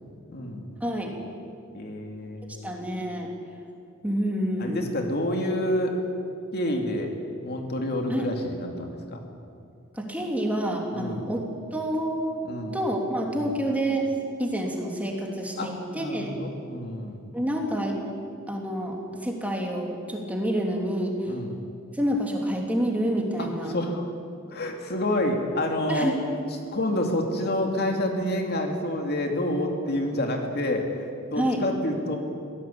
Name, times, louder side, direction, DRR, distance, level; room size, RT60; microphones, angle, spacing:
voice 1, 0.3-0.8 1.7-2.7 4.6-6.0 6.5-7.1 7.4-9.2 10.9-11.3 12.4-12.8 13.3-13.5 15.6-17.3 21.3-21.6 23.4-24.1 24.5-26.1 26.7-32.2, left 1 dB, 50° left, 3 dB, 2.6 m, -28 dB
voice 2, 0.8-1.2 2.6-3.3 4.0-4.8 8.1-8.3 9.9-12.4 12.7-14.1 14.4-16.4 17.3-18.0 18.5-21.4 21.9-23.8 25.9-26.2 31.4-31.6, right 1 dB, 5° right, 0 dB, 3.0 m, -28 dB
24.0 x 17.0 x 8.7 m, 2.4 s
head